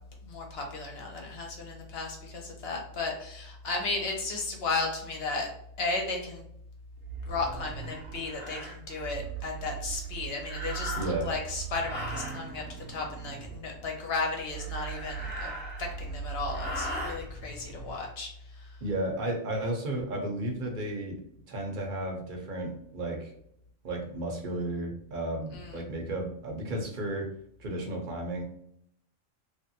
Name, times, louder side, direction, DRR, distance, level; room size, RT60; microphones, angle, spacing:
voice 1, 0.2-5.5 5.8-6.4 7.2-11.0 11.2-15.5 15.8-18.8 25.5-25.8, left 3 dB, 55° left, 1 dB, 1.0 m, -34 dB
sound 1, 6.9-18.0, right 6 dB, 75° right, 1.0 m, -40 dB
sound 2, 7.4-7.5 8.2-8.8 10.4-11.3 11.8-12.4 14.6-16.1 16.5-17.2, equal, 10° left, 0.6 m, -38 dB
voice 2, 11.0-11.3 18.8-21.2 21.5-23.3 23.8-27.3 27.6-28.4, right 1 dB, 45° right, 1 dB, 0.8 m, -33 dB
3.3 x 2.6 x 2.7 m, 0.71 s
omnidirectional pair, 1.3 m